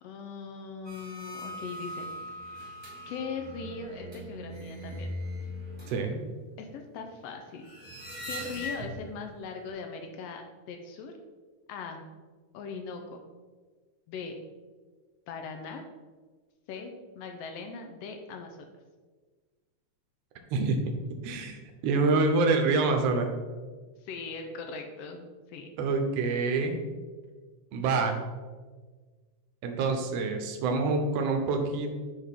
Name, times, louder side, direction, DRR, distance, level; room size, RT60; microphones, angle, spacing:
voice 1, 0.0-2.1 2.4-2.6 3.1-5.1 6.6-7.7 8.2-11.2 11.7-12.0 12.5-13.2 14.1-14.3 15.3-15.8 16.7-18.7 24.0-25.7, left 4 dB, 80° left, 4 dB, 1.4 m, -40 dB
sound 1, 0.8-9.2 9.6-9.7, left 1 dB, 15° right, 0.9 m, -40 dB
voice 2, 5.9-6.2 20.5-20.8 21.2-23.3 25.8-26.7 27.7-28.2 29.6-31.9, right 3 dB, 70° right, 4 dB, 1.6 m, -26 dB
9.8 x 3.6 x 3.6 m, 1.4 s
omnidirectional pair, 3.4 m